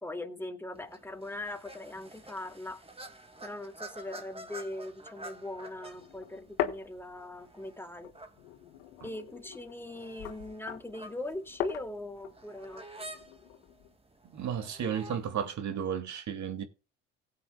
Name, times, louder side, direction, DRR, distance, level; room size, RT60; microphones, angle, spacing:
voice 1, 0.0-2.8 3.4-8.1 9.0-12.8, left 1 dB, 5° left, 2.4 m, -40 dB
sound 1, 0.7-15.5, right 2 dB, 20° right, 2.1 m, -50 dB
sound 2, 5.8-7.7 8.0-13.9, left 12 dB, 90° left, 1.4 m, -40 dB
voice 2, 14.3-16.6, right 8 dB, 60° right, 2.4 m, -33 dB
17.5 x 8.5 x 2.3 m
hypercardioid pair, 60°, 32 cm